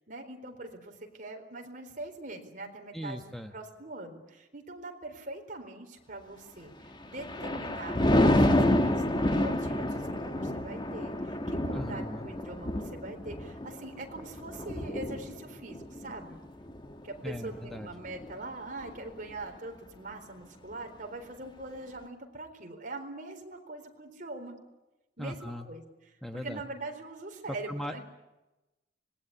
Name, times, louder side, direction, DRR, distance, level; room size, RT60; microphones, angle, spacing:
voice 1, 0.1-6.7 7.0-16.4 17.0-24.6 25.2-25.8 26.3-28.0, right 2 dB, 45° right, 4 dB, 4.2 m, -42 dB
voice 2, 2.9-3.5 11.7-12.3 17.2-17.9 25.2-25.7 26.2-26.6 27.7-28.0, equal, ahead, 5 dB, 1.2 m, -38 dB
Thunder, 6.9-18.4 18.8-19.1, left 1 dB, 25° left, 1.7 m, -29 dB
25.5 x 20.5 x 9.9 m, 1.0 s
head